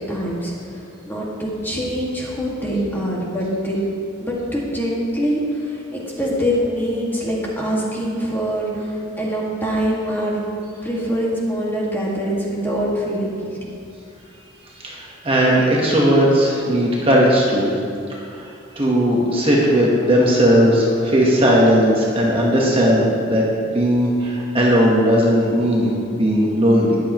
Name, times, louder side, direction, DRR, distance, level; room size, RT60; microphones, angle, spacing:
voice 1, 0.0-3.8 4.2-10.4 10.8-13.7, equal, 10° left, -5 dB, 2.0 m, -24 dB
voice 2, 14.8-17.7 18.2-18.5 18.7-23.5 23.7-27.0, equal, 25° right, -4 dB, 1.3 m, -17 dB
21.0 x 7.1 x 3.1 m, 2.4 s
head